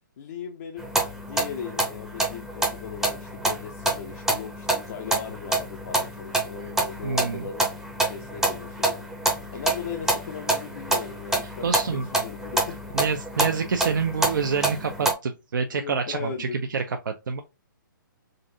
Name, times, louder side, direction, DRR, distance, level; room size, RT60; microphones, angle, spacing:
voice 1, 0.2-7.7 8.0-9.0 9.5-12.8 15.7-16.6, left 7 dB, 45° left, 0.5 m, -38 dB
sound 1, 0.8-15.1, right 2 dB, 5° right, 0.6 m, -27 dB
voice 2, 7.0-7.4 11.6-12.1 12.9-17.4, right 5 dB, 65° right, 0.5 m, -27 dB
3.9 x 2.5 x 2.6 m
figure-of-eight pair, 135°, 11 cm